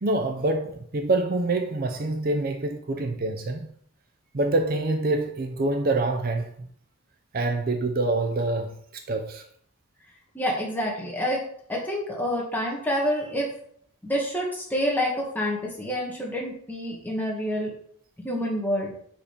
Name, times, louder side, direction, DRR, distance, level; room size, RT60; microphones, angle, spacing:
voice 1, 0.0-3.7 4.3-6.7 7.3-9.4, right 2 dB, 40° right, 0.5 m, -26 dB
voice 2, 10.3-11.4 11.7-13.5 14.0-17.7 18.2-18.9, equal, 10° left, 1.5 m, -27 dB
5.0 x 5.0 x 5.0 m
head